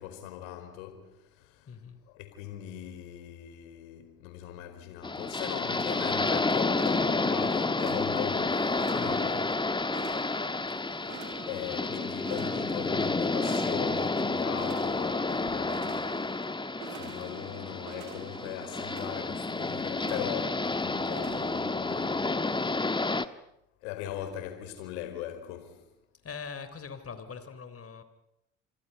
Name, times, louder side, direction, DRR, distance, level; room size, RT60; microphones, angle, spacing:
voice 1, 0.0-1.7 2.1-9.4 10.9-16.3 16.9-22.9 23.8-25.9, left 11 dB, 70° left, 4.7 m, -40 dB
voice 2, 1.7-2.0 8.9-9.5 26.2-28.0, left 6 dB, 35° left, 3.6 m, -42 dB
sound 1, 5.0-23.3, left 3 dB, 10° left, 1.3 m, -30 dB
sound 2, 6.0-22.0, right 10 dB, 70° right, 2.6 m, -48 dB
27.5 x 24.5 x 5.6 m
hypercardioid pair, 60°, 40 cm